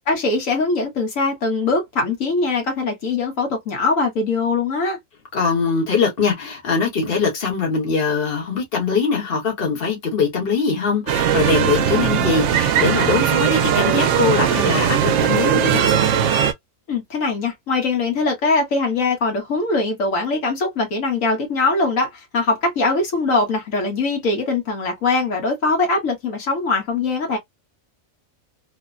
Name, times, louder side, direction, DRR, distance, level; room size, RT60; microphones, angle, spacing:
voice 1, 0.1-5.0 16.9-27.4, left 3 dB, 70° left, 1.5 m, -21 dB
voice 2, 5.3-15.9, left 5 dB, 45° left, 1.3 m, -22 dB
sound 1, 11.1-16.5, right 9 dB, 70° right, 0.9 m, -19 dB
3.2 x 2.1 x 2.4 m
omnidirectional pair, 1.4 m